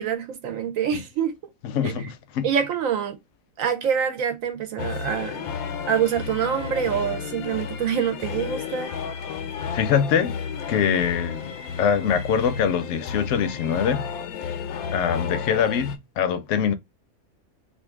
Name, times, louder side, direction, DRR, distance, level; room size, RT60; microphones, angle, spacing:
voice 1, 0.0-1.4 1.8-2.1 2.4-3.2 3.6-5.5 5.9-9.0, right 8 dB, 75° right, 1.0 m, -26 dB
voice 2, 1.6-2.5 9.7-10.4 10.7-11.5 11.8-14.1 14.7-16.7, left 7 dB, 70° left, 0.9 m, -24 dB
sound 1, 4.8-16.0, left 7 dB, 90° left, 1.1 m, -32 dB
2.7 x 2.5 x 3.4 m
omnidirectional pair, 1.5 m